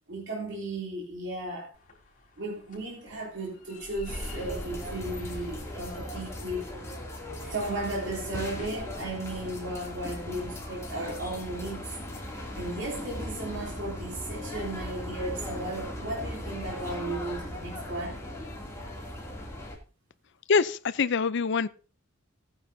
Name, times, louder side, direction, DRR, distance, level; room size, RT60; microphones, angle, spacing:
voice 1, 0.1-1.7 2.4-6.7 7.5-11.8 12.2-18.2, right 2 dB, 60° right, 3.1 m, -35 dB
sound 1, 1.7-9.3, left 1 dB, 40° left, 4.3 m, -47 dB
sound 2, 4.1-19.8, left 1 dB, 15° left, 2.7 m, -38 dB
voice 2, 20.5-21.7, left 5 dB, 60° left, 0.5 m, -24 dB
17.0 x 9.8 x 2.7 m
head